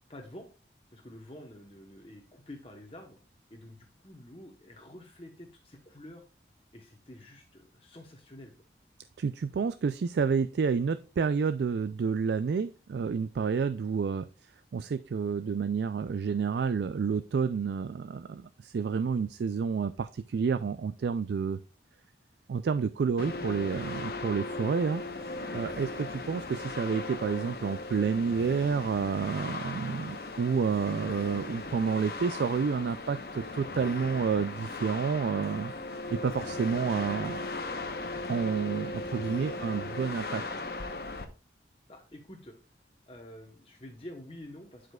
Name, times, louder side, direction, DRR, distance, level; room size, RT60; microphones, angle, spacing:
voice 1, 0.1-0.5 0.9-3.2 3.5-6.2 6.7-8.5 41.9-42.6 43.1-44.9, left 1 dB, 30° left, 2 dB, 1.0 m, -48 dB
voice 2, 9.2-14.3 14.7-21.6 22.5-25.0 25.5-35.7 36.1-37.5 38.3-40.4, right 5 dB, 70° right, 12 dB, 0.3 m, -29 dB
sound 1, 23.2-41.3, left 3 dB, 55° left, 0.9 m, -38 dB
12.0 x 5.1 x 2.3 m, 0.33 s
head